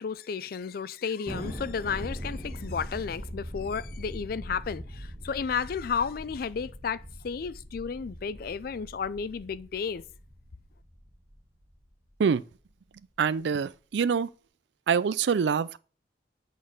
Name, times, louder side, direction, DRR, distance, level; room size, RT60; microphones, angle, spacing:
voice 1, 0.0-10.0, left 6 dB, 55° left, 0.4 m, -33 dB
Thunder, 1.3-11.9, equal, 35° right, 2.2 m, -41 dB
voice 2, 13.2-14.3 14.9-15.8, right 6 dB, 75° right, 0.4 m, -25 dB
8.6 x 4.0 x 5.1 m
head